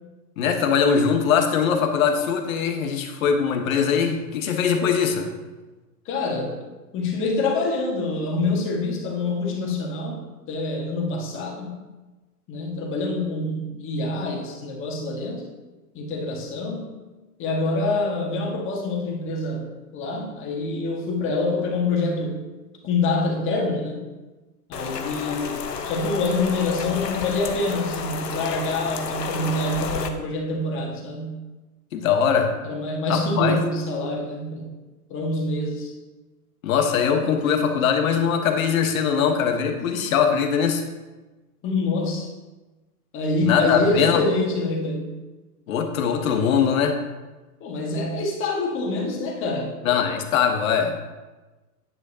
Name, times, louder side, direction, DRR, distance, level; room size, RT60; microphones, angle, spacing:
voice 1, 0.4-5.3 31.9-32.5 33.1-33.6 36.6-40.8 43.4-44.2 45.7-47.0 49.8-51.1, left 7 dB, 60° left, 5 dB, 1.3 m, -21 dB
voice 2, 6.0-6.5 6.9-11.8 12.5-15.4 15.9-16.9 17.4-19.7 19.9-22.5 22.8-24.0 24.7-31.4 32.6-34.7 35.1-35.9 41.6-42.3 43.1-45.2 47.6-49.9, left 2 dB, 25° left, -1 dB, 1.7 m, -26 dB
Rain, 24.7-30.1, left 6 dB, 90° left, 1.0 m, -31 dB
9.6 x 8.0 x 2.8 m, 1.2 s
hypercardioid pair, 120°, 47 cm